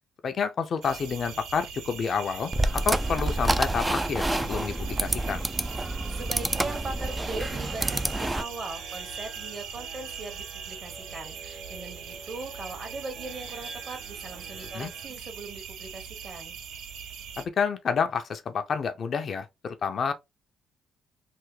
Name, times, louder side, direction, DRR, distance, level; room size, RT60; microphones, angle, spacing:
voice 1, 0.2-5.4 14.7-14.9 17.4-20.1, left 6 dB, 55° left, 0.5 m, -29 dB
sound 1, 0.8-17.4, right 7 dB, 85° right, 0.5 m, -41 dB
sound 2, 2.5-8.4, right 1 dB, 10° right, 0.3 m, -28 dB
voice 2, 6.1-16.6, right 3 dB, 45° right, 1.5 m, -40 dB
sound 3, 6.4-15.0, right 3 dB, 70° right, 0.9 m, -47 dB
3.4 x 2.0 x 3.1 m
cardioid pair, 90°, 0 cm